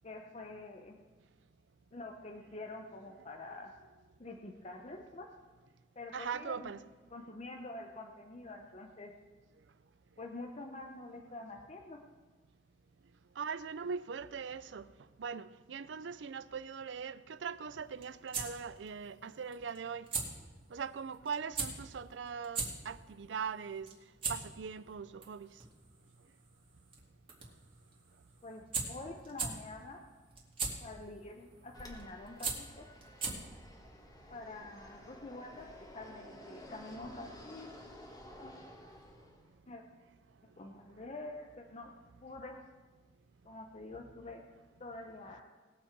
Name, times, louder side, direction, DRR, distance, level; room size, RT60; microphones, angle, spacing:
voice 1, 0.0-0.9 1.9-3.7 4.2-5.3 6.0-6.8 7.1-9.1 10.2-12.0 28.4-30.0 30.8-32.9 34.3-37.7 38.4-38.5 39.7-39.8 40.4-41.9 42.2-42.6 43.4-44.4 44.8-45.4, left 2 dB, 35° left, 0.8 m, -47 dB
voice 2, 6.1-6.8 13.4-14.9 15.2-20.1 20.7-23.9 24.3-25.5, right 6 dB, 85° right, 0.5 m, -41 dB
sound 1, 17.8-33.6, right 4 dB, 30° right, 2.2 m, -42 dB
Fixed-wing aircraft airplane, 31.7-39.5, left 1 dB, 20° left, 1.5 m, -53 dB
19.5 x 7.2 x 4.6 m
head